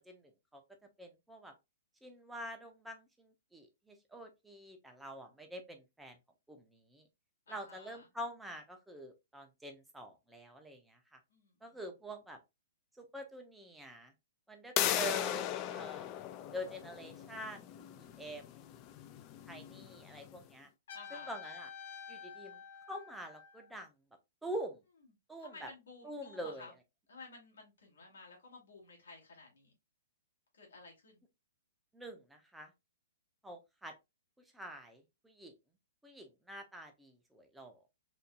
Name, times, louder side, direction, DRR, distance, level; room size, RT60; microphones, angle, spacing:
voice 1, 0.1-1.5 2.0-6.2 6.5-7.0 7.5-11.2 11.6-12.4 13.0-14.1 14.5-16.1 16.5-18.5 19.5-20.7 21.1-21.7 22.1-22.6 22.9-23.9 24.4-24.8 25.3-25.7 26.0-26.7 31.9-32.7 33.4-33.9 34.5-35.5 36.0-37.8, equal, 5° right, 0.6 m, -46 dB
voice 2, 7.5-8.1 11.3-11.8 20.9-21.3 25.4-26.7 27.1-29.7 30.5-31.2, left 3 dB, 90° left, 2.0 m, -54 dB
sound 1, 14.8-20.3, left 12 dB, 30° left, 0.3 m, -38 dB
Trumpet, 20.9-23.7, left 7 dB, 70° left, 1.3 m, -49 dB
3.8 x 2.7 x 2.3 m
hypercardioid pair, 155°, 0 cm